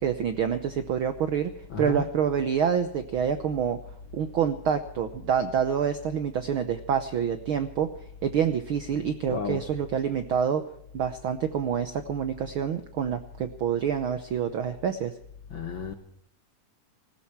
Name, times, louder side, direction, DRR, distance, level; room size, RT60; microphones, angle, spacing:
voice 1, 0.0-1.5 1.8-3.8 4.1-7.9 8.2-10.6 10.9-15.1, right 8 dB, 70° right, 1.2 m, -27 dB
voice 2, 1.7-2.1 9.3-9.6 15.5-15.9, left 7 dB, 60° left, 1.3 m, -32 dB
19.5 x 16.5 x 4.6 m
omnidirectional pair, 3.5 m